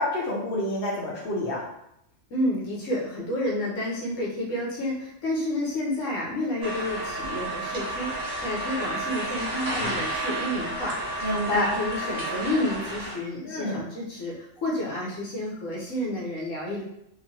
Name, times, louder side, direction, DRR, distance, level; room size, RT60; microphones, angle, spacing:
voice 1, 0.0-1.6 11.2-11.7 13.5-13.8, left 1 dB, 60° left, -5 dB, 0.7 m, -27 dB
voice 2, 2.3-16.8, left 1 dB, 75° left, -4 dB, 1.0 m, -30 dB
sound 1, 6.6-13.2, right 1 dB, 60° right, 0.8 m, -31 dB
2.9 x 2.4 x 2.6 m, 0.80 s
omnidirectional pair, 1.4 m